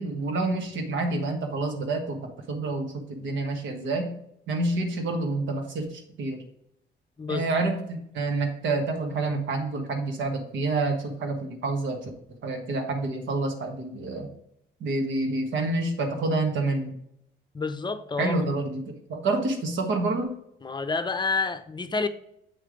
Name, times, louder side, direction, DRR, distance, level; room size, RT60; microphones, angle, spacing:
voice 1, 0.0-2.2 2.5-4.1 4.5-6.4 7.3-12.1 12.4-14.3 14.8-16.9 18.2-18.8 19.1-20.4, right 2 dB, 70° right, 1.5 m, -28 dB
voice 2, 17.5-18.5 20.6-22.1, left 4 dB, 20° left, 0.7 m, -29 dB
8.4 x 3.3 x 5.1 m
cardioid pair, 90°, 20 cm